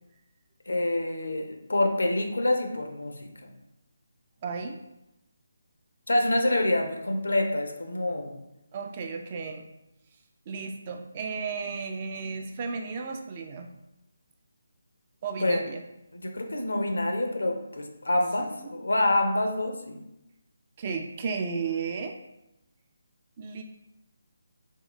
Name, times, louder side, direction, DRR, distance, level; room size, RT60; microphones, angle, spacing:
voice 1, 0.7-3.3 6.1-8.4 15.4-15.6 16.1-20.0, left 1 dB, 75° left, 4 dB, 0.6 m, -26 dB
voice 2, 4.4-4.8 8.7-9.6 10.5-13.7 15.2-15.8 18.4-18.8 20.8-22.2 23.4-23.6, right 5 dB, 30° right, 4 dB, 0.4 m, -34 dB
3.7 x 3.0 x 3.2 m, 0.91 s
figure-of-eight pair, 150°, 0 cm